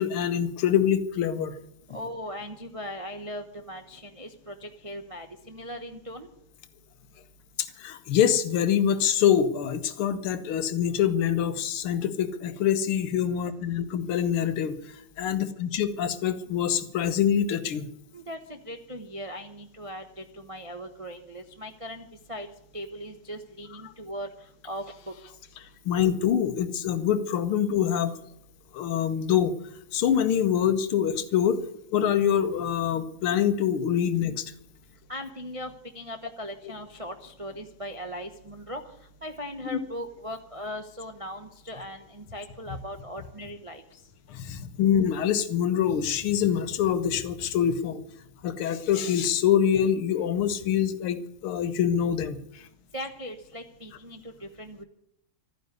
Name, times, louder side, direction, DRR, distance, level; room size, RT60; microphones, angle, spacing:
voice 1, 0.0-1.6 7.6-14.7 15.2-17.9 25.9-28.2 28.7-29.5 29.9-31.6 31.9-34.5 39.7-39.8 44.3-48.0 48.4-52.6, left 9 dB, 80° left, 12 dB, 1.8 m, -25 dB
voice 2, 1.9-6.3 18.1-22.5 22.7-25.4 35.1-44.0 52.9-54.8, equal, 40° right, 5 dB, 0.4 m, -39 dB
13.5 x 9.6 x 9.5 m, 0.75 s
omnidirectional pair, 2.4 m